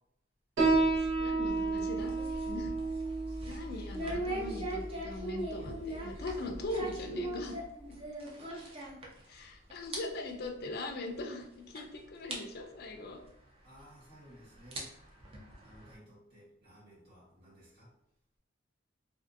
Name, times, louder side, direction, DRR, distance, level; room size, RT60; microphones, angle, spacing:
Piano, 0.6-7.6, right 3 dB, 80° right, 1.0 m, -33 dB
voice 1, 1.0-2.1 2.5-2.7 3.5-7.6 7.8-8.0 9.3-13.2, left 2 dB, 50° left, 3 dB, 0.4 m, -40 dB
sound 1, 1.5-9.4 9.7-10.0 10.3-10.4 11.2-11.3 11.7-11.8 12.3-12.4 13.7-13.8 14.5-15.9, right 1 dB, 30° right, 0.6 m, -40 dB
voice 2, 13.6-14.9 15.6-17.9, equal, 50° right, -8 dB, 1.1 m, -56 dB
2.6 x 2.5 x 2.5 m, 0.77 s
head